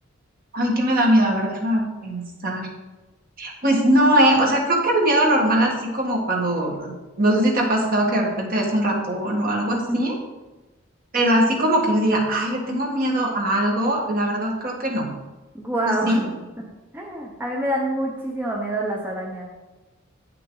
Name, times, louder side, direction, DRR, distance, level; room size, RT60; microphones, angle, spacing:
voice 1, 0.5-2.7 3.4-10.1 11.1-15.1 15.9-16.3, right 1 dB, 45° right, -1 dB, 1.6 m, -21 dB
voice 2, 15.5-16.3 16.9-19.4, right 1 dB, 10° right, -2 dB, 0.8 m, -26 dB
9.4 x 5.8 x 3.9 m, 1.1 s
head